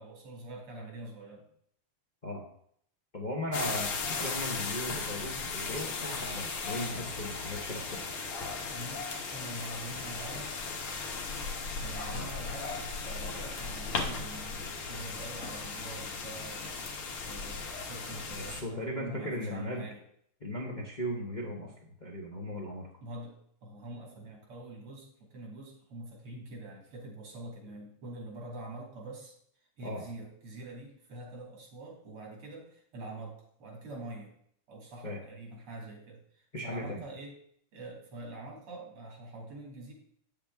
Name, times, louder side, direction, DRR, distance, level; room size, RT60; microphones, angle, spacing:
voice 1, 0.0-1.5 7.6-7.7 8.7-9.0 9.3-10.6 11.8-16.9 17.2-20.0 23.0-23.3 23.6-29.3 29.8-34.3 34.7-37.3 37.7-39.9, right 2 dB, 80° right, -1 dB, 3.5 m, -45 dB
voice 2, 3.1-8.1 12.1-12.3 18.4-19.8 20.4-21.7 22.0-22.9 29.8-30.0 35.0-35.2 36.5-37.0, left 1 dB, 30° left, -2 dB, 0.8 m, -37 dB
sound 1, 3.5-18.6, left 4 dB, 75° left, 2.0 m, -37 dB
8.7 x 7.3 x 3.5 m, 0.66 s
omnidirectional pair, 2.4 m